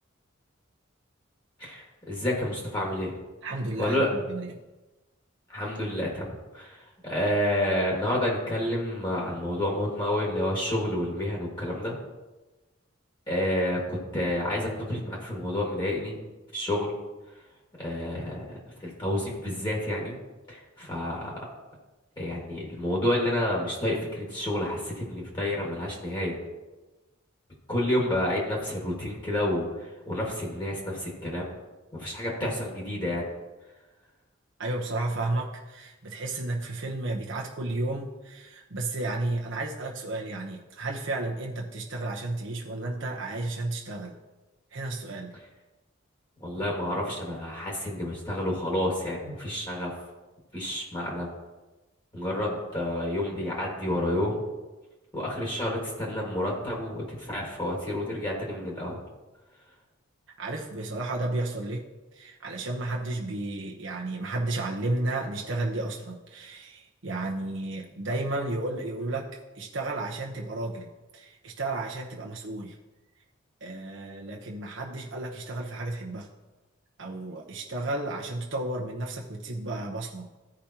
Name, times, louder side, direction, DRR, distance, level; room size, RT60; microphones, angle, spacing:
voice 1, 1.6-3.2 3.8-4.1 5.5-11.9 13.3-16.2 16.5-16.9 17.3-17.4 17.8-20.2 20.5-21.3 22.2-26.4 27.7-31.5 31.9-33.2 46.4-49.9 50.5-51.3 52.1-54.5 55.1-59.0, left 1 dB, 25° left, -3 dB, 1.9 m, -29 dB
voice 2, 3.4-4.5 34.6-44.1 44.7-45.3 60.4-61.8 62.1-69.3 69.5-72.7 73.6-76.3 77.0-80.3, right 2 dB, 65° right, -2 dB, 0.9 m, -32 dB
14.5 x 5.1 x 2.9 m, 1.1 s
head